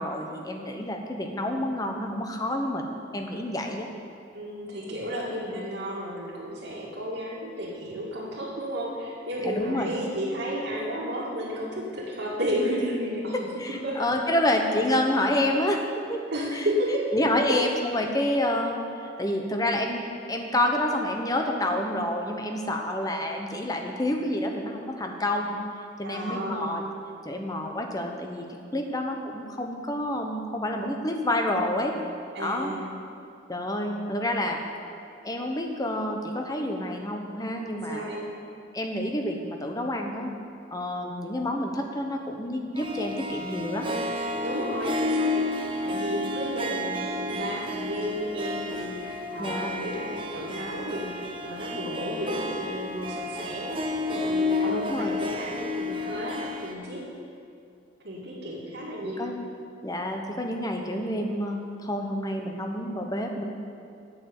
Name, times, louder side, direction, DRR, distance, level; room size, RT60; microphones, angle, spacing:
voice 1, 0.0-2.9 3.1-3.9 9.4-9.9 13.3-16.2 16.5-16.7 17.1-25.6 26.0-26.8 27.2-32.0 32.4-32.7 33.5-34.6 35.2-38.0 38.7-40.3 40.7-43.9 49.4-49.7 54.6-55.2 59.2-59.5 59.8-63.4, left 1 dB, 20° left, 3 dB, 1.0 m, -28 dB
voice 2, 4.3-14.1 16.3-17.1 17.5-17.6 26.0-26.8 32.3-32.8 37.7-38.3 44.4-57.1 58.0-59.3, equal, 65° right, -9 dB, 2.1 m, -32 dB
Harp, 42.8-56.7, left 2 dB, 25° right, 0.8 m, -31 dB
8.5 x 6.9 x 8.7 m, 2.5 s
head